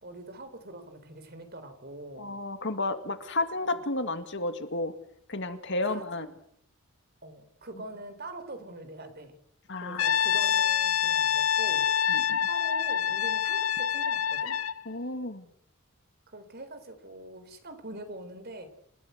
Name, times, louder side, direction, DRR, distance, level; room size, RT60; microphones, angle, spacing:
voice 1, 0.0-2.3 5.9-6.3 7.2-9.3 9.8-11.9 12.5-14.6 16.3-18.7, right 2 dB, 50° right, 9 dB, 4.0 m, -43 dB
voice 2, 2.2-4.9 5.3-6.3 9.7-10.0 12.1-12.4 14.9-15.5, left 2 dB, 55° left, 8 dB, 2.3 m, -32 dB
Brass instrument, 10.0-14.8, left 9 dB, 80° left, 1.0 m, -26 dB
28.5 x 15.5 x 8.1 m, 0.71 s
head